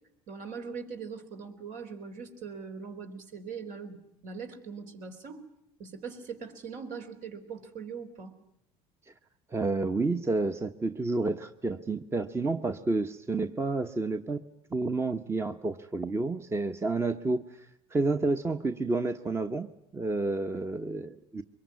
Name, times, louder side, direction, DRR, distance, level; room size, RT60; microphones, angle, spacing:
voice 1, 0.3-5.4 5.8-8.3, right 5 dB, 65° right, 5 dB, 4.0 m, -41 dB
voice 2, 9.5-14.4 14.7-17.7 17.9-21.4, right 3 dB, 20° right, 8 dB, 1.1 m, -30 dB
24.0 x 22.0 x 9.6 m, 0.77 s
supercardioid pair, 100°, 14 cm